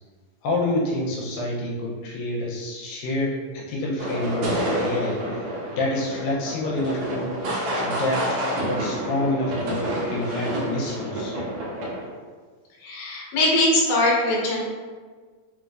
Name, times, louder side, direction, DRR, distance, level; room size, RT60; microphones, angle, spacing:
voice 1, 0.4-5.2 5.7-7.4 7.7-11.4, left 2 dB, 80° left, -3 dB, 2.3 m, -28 dB
sound 1, 4.0-12.1, right 1 dB, 70° right, 1.6 m, -28 dB
voice 2, 12.8-14.6, left 1 dB, 65° left, -5 dB, 1.8 m, -21 dB
5.2 x 3.1 x 2.4 m, 1.5 s
omnidirectional pair, 4.1 m